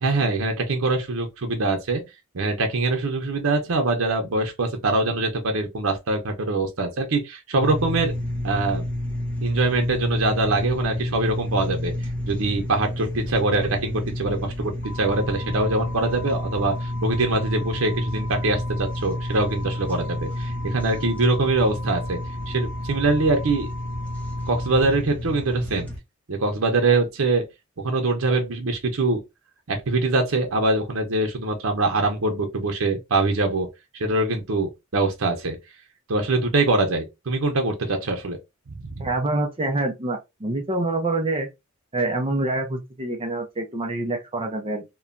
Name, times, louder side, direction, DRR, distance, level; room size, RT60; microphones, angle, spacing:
voice 1, 0.0-2.0 2.3-8.1 8.4-8.8 9.4-22.2 22.5-23.7 24.5-25.9 26.3-27.4 27.8-29.2 29.7-33.7 33.9-35.6 36.1-38.4 38.8-39.1, right 2 dB, 85° right, 0.7 m, -23 dB
sound 1, 7.6-26.0, left 1 dB, 5° left, 0.8 m, -30 dB
sound 2, 14.8-24.8, left 2 dB, 45° left, 0.9 m, -40 dB
voice 2, 39.0-41.5 41.9-44.8, right 2 dB, 25° right, 0.5 m, -26 dB
3.0 x 2.2 x 2.5 m
head